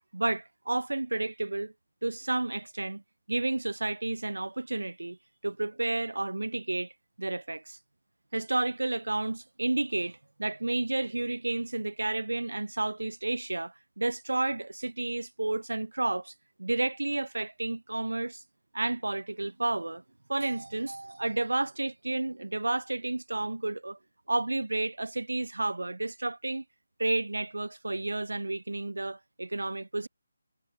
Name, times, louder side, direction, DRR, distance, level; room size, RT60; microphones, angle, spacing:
voice 1, 0.0-1.7 2.0-3.0 3.3-5.2 5.4-6.9 7.2-7.8 8.3-16.3 16.6-18.4 18.7-20.0 20.3-24.0 24.3-26.6 27.0-30.1, right 2 dB, 70° right, 2.8 m, -31 dB
figure-of-eight pair, 150°, 0 cm